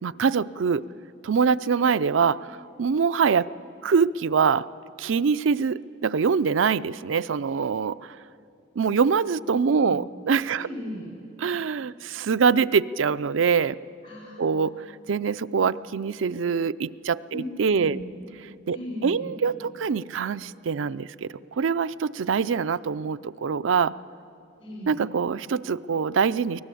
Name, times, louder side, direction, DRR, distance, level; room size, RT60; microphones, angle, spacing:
voice 1, 0.0-0.9 1.2-2.5 2.8-3.5 3.8-4.7 5.0-8.1 8.8-10.7 11.4-13.8 14.4-14.8 15.1-18.0 18.7-18.8 19.0-23.9 24.9-26.6, right 6 dB, 85° right, 15 dB, 0.5 m, -24 dB
voice 2, 9.6-10.0 10.6-11.1 11.4-11.5 12.0-12.1 14.0-14.7 17.3-17.4 17.7-18.0 18.7-19.3 24.6-25.0, equal, 90° left, -5 dB, 6.5 m, -38 dB
23.0 x 18.5 x 8.4 m, 2.6 s
head